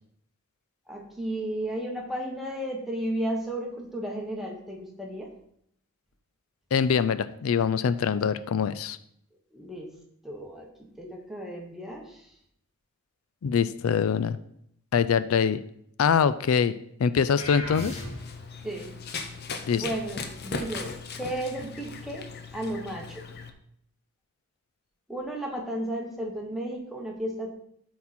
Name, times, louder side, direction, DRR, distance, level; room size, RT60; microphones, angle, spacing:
voice 1, 0.9-5.3 9.5-9.9 10.2-10.7 11.0-12.3 18.6-18.9 19.8-22.2 22.5-23.3 25.1-27.5, right 1 dB, ahead, 0 dB, 1.2 m, -33 dB
voice 2, 6.7-9.0 13.4-14.4 14.9-15.6 16.0-16.7 17.0-18.0 19.7-19.8, left 6 dB, 80° left, 14 dB, 0.4 m, -24 dB
sound 1, 17.4-18.5, left 1 dB, 30° left, 1.8 m, -36 dB
Run, 17.9-23.5, left 4 dB, 45° left, 0.7 m, -38 dB
12.5 x 4.2 x 4.2 m, 0.71 s
head